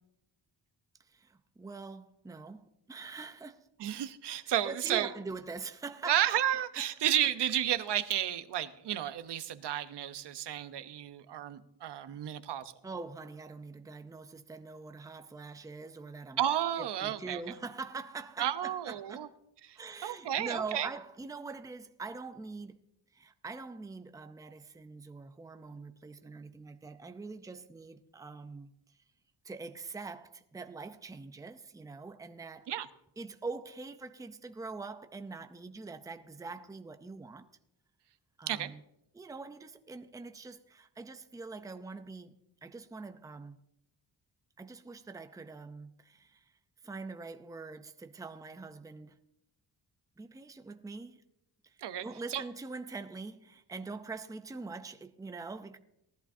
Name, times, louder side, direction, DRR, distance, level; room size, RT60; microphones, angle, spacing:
voice 1, 1.0-3.7 4.4-6.2 6.8-6.9 12.8-16.4 16.8-19.3 19.8-22.8 23.1-29.0 29.4-32.7 33.2-37.5 38.4-38.8 39.1-43.6 44.6-46.5 46.8-49.2 50.2-51.2 51.6-55.8, right 4 dB, 10° right, 0.6 m, -44 dB
voice 2, 3.8-5.1 6.1-12.7 16.4-17.4 18.4-19.3 19.6-20.9 32.7-32.9 38.5-38.7 51.8-52.0 52.3-52.4, right 11 dB, 70° right, 0.9 m, -32 dB
19.0 x 14.0 x 2.7 m
wide cardioid pair, 155°, 42 cm